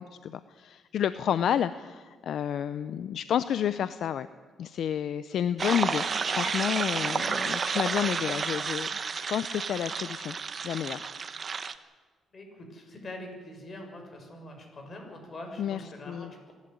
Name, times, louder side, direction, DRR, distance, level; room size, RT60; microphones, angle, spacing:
voice 1, 0.0-4.3 4.6-10.4 10.6-11.1 15.6-15.8 16.1-16.3, left 9 dB, 70° left, 14 dB, 0.6 m, -30 dB
voice 2, 1.2-1.5 12.3-16.5, left 1 dB, 40° left, 3 dB, 6.7 m, -44 dB
sound 1, 5.6-11.7, right 5 dB, 40° right, 1.2 m, -31 dB
26.0 x 11.5 x 9.6 m, 1.4 s
cardioid pair, 90°, 0 cm